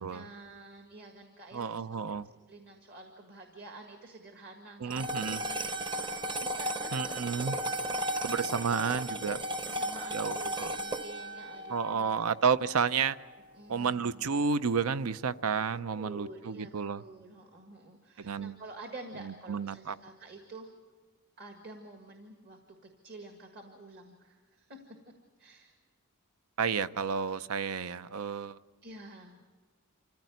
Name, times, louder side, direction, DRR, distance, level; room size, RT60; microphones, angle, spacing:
voice 1, 0.1-2.0 2.5-8.0 9.6-12.1 13.5-14.2 16.0-20.7 21.4-24.9 25.4-25.8 28.8-29.4, right 2 dB, 50° right, 4 dB, 1.8 m, -49 dB
voice 2, 1.5-2.3 4.8-5.4 6.9-7.6 8.2-9.4 10.1-10.7 11.7-13.2 13.7-17.0 18.2-18.6 19.2-20.0 26.6-28.6, right 6 dB, 75° right, 15 dB, 0.6 m, -31 dB
sound 1, 4.9-13.4, right 1 dB, 20° right, 0.8 m, -35 dB
26.0 x 15.0 x 9.3 m, 1.4 s
head